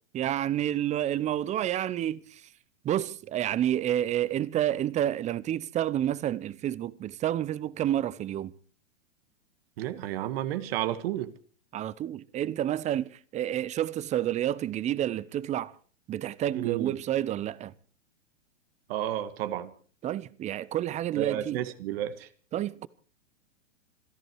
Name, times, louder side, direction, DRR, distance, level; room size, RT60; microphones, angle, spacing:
voice 1, 0.1-2.5 2.8-8.5 11.7-15.7 16.1-17.7 20.0-21.6 22.5-22.9, right 11 dB, 20° right, 0.7 m, -29 dB
voice 2, 9.8-11.3 16.5-16.9 18.9-19.7 21.2-22.3, right 12 dB, 50° right, 1.7 m, -31 dB
27.0 x 11.0 x 4.6 m
hypercardioid pair, 125°, 37 cm